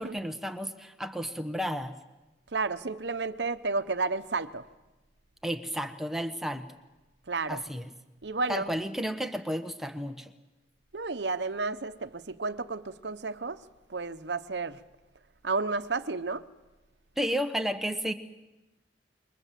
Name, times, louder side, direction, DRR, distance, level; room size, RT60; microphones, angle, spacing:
voice 1, 0.0-2.0 5.4-6.7 7.5-7.9 8.5-10.3 17.2-18.1, equal, ahead, 1.2 m, -32 dB
voice 2, 2.5-4.7 7.3-7.7 8.2-8.7 10.9-13.6 13.9-14.8 15.4-16.5, right 3 dB, 80° right, 1.0 m, -32 dB
27.0 x 23.5 x 7.5 m
head